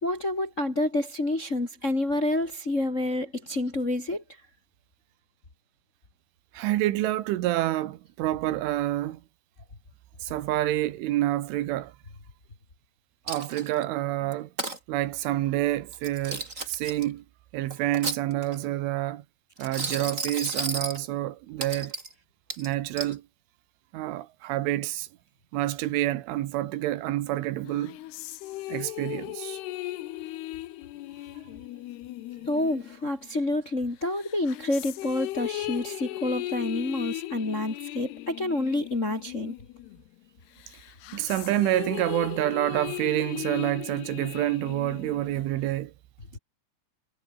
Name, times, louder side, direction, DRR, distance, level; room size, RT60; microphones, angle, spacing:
voice 1, 0.0-4.2 32.5-39.5, left 2 dB, 25° left, 2.0 m, -28 dB
voice 2, 6.5-9.2 10.2-11.9 13.3-14.5 14.9-17.3 17.5-19.3 19.6-22.0 22.6-23.2 23.9-25.1 25.5-28.0 28.7-29.6 41.1-45.9 46.3-46.4, right 15 dB, 85° right, 3.9 m, -28 dB
Coin (dropping), 13.3-13.8 14.3-14.8 15.9-17.0 17.7-18.6 19.6-21.0 21.6-22.1 22.5-23.1, right 2 dB, 15° right, 4.4 m, -33 dB
sound 1, 27.7-33.6 34.1-40.2 40.6-45.7, left 16 dB, 70° left, 2.8 m, -37 dB
omnidirectional pair, 5.4 m